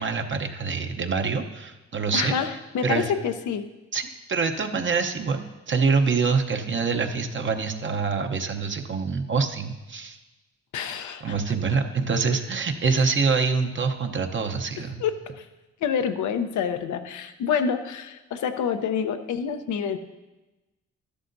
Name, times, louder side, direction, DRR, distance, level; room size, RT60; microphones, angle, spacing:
voice 1, 0.0-2.3 2.8-3.1 3.9-10.2 11.2-15.0, right 5 dB, 40° right, 5 dB, 0.8 m, -25 dB
voice 2, 2.1-3.6 10.7-11.4 15.0-15.5 15.8-20.0, left 7 dB, 85° left, 7 dB, 0.8 m, -27 dB
13.0 x 11.5 x 2.6 m, 1.1 s
cardioid pair, 80°, 29 cm